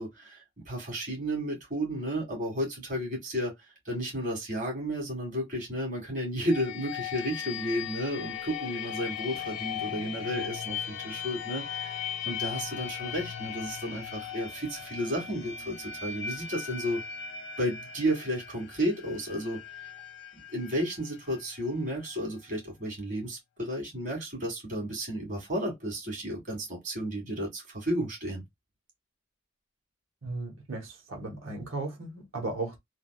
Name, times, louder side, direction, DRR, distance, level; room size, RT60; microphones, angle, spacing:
voice 1, 0.0-3.5 3.9-12.0 12.2-17.0 17.6-19.6 20.5-28.4, equal, 40° right, 1.9 m, -32 dB
sound 1, 6.5-22.1, left 8 dB, 60° left, 0.5 m, -38 dB
voice 2, 30.2-32.8, right 2 dB, 70° right, 1.0 m, -36 dB
3.4 x 2.3 x 2.3 m
head